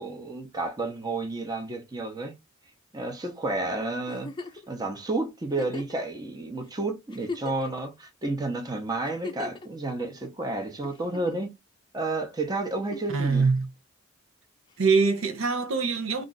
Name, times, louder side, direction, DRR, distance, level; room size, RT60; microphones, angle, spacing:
voice 1, 0.0-2.3 2.9-4.3 4.7-11.5 11.9-13.5, right 2 dB, 20° right, 0.7 m, -31 dB
Giggle, 4.1-4.7 5.5-6.0 6.6-6.7 7.1-7.9 9.0-9.7 10.8-11.5 12.8-13.2 14.7-14.8, left 3 dB, 20° left, 0.5 m, -39 dB
voice 2, 13.1-13.7 14.8-16.3, right 4 dB, 70° right, 0.6 m, -23 dB
2.5 x 2.4 x 3.8 m
head